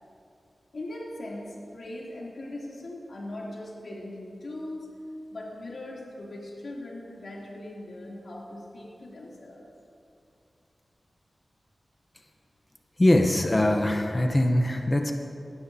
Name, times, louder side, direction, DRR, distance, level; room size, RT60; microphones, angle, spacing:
voice 1, 0.7-4.9 5.3-9.7, left 1 dB, 70° left, -4 dB, 2.8 m, -40 dB
voice 2, 13.0-15.1, left 1 dB, 25° left, 4 dB, 0.8 m, -22 dB
18.0 x 12.5 x 2.8 m, 2.6 s
wide cardioid pair, 105°, 0 cm